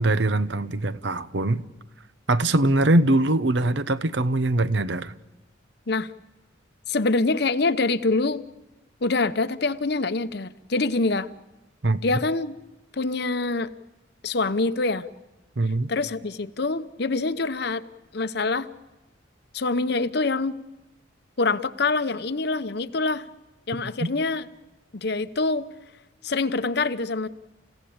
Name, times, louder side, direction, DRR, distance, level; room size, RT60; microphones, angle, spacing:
voice 1, 0.0-1.6 2.3-5.1 11.8-12.1 15.6-15.9 24.0-24.1, right 2 dB, 65° right, 0.9 m, -22 dB
voice 2, 6.9-8.4 9.0-11.3 12.0-12.6 12.9-13.7 14.2-15.1 15.9-17.8 18.1-18.7 19.5-20.6 21.4-23.3 23.7-24.4 24.9-25.7 26.2-27.3, left 3 dB, 55° left, 0.8 m, -25 dB
29.5 x 16.5 x 8.7 m
head